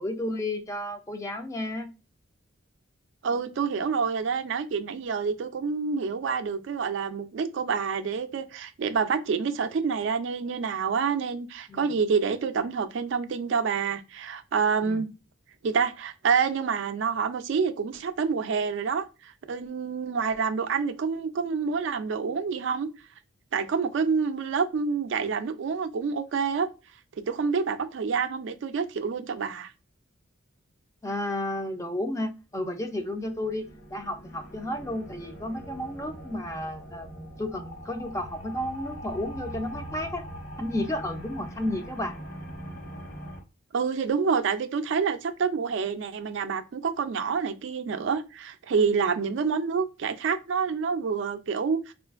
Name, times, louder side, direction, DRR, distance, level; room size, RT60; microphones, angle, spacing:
voice 1, 0.0-1.9 11.7-11.9 14.8-15.0 31.0-40.2 40.6-42.1, left 1 dB, 15° left, 0.4 m, -32 dB
voice 2, 3.2-15.1 15.6-22.9 23.5-26.7 27.2-29.7 43.7-51.9, right 5 dB, 65° right, 0.3 m, -27 dB
sound 1, 32.8-43.4, equal, 60° left, 1.1 m, -42 dB
3.7 x 2.4 x 2.4 m
head